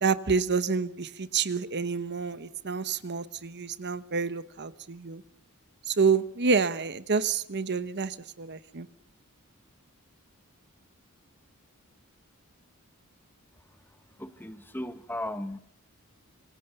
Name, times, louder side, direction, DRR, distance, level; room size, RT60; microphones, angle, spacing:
voice 1, 0.0-5.2 5.9-8.9, right 5 dB, 50° right, 13 dB, 1.0 m, -28 dB
voice 2, 14.1-15.6, left 1 dB, 10° left, 10 dB, 1.3 m, -36 dB
26.5 x 24.5 x 6.9 m, 0.69 s
head